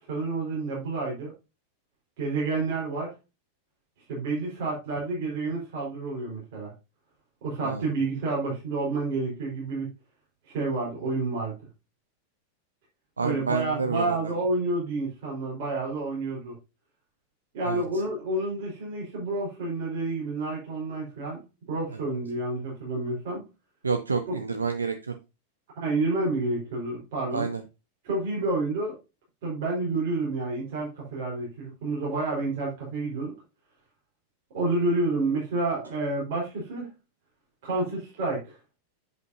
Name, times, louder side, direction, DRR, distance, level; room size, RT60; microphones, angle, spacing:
voice 1, 0.1-1.3 2.2-3.1 4.1-6.7 7.4-9.9 10.5-11.5 13.2-16.5 17.5-21.4 21.7-23.4 24.3-24.4 25.8-27.5 28.0-29.0 29.4-33.3 34.5-36.9 37.6-38.5, right 2 dB, 50° right, -4 dB, 4.5 m, -29 dB
voice 2, 13.2-14.3 17.6-17.8 23.8-25.1 27.3-27.6, right 5 dB, 75° right, 8 dB, 0.6 m, -29 dB
8.1 x 8.0 x 2.7 m, 0.27 s
figure-of-eight pair, 90°, 0 cm